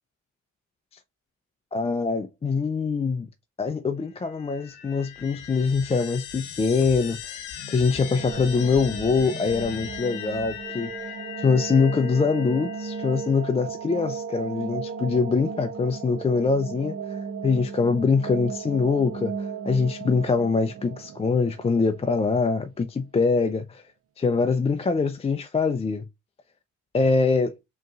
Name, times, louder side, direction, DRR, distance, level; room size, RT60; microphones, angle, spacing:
voice 1, 1.7-3.3 3.6-7.2 7.7-23.8 24.2-26.0 26.9-27.6, left 4 dB, 20° left, 0.4 m, -24 dB
sound 1, 4.1-13.4, left 8 dB, 90° left, 0.9 m, -39 dB
sound 2, 7.6-22.5, right 6 dB, 50° right, 0.6 m, -36 dB
5.0 x 3.0 x 2.4 m
cardioid pair, 90°, 30 cm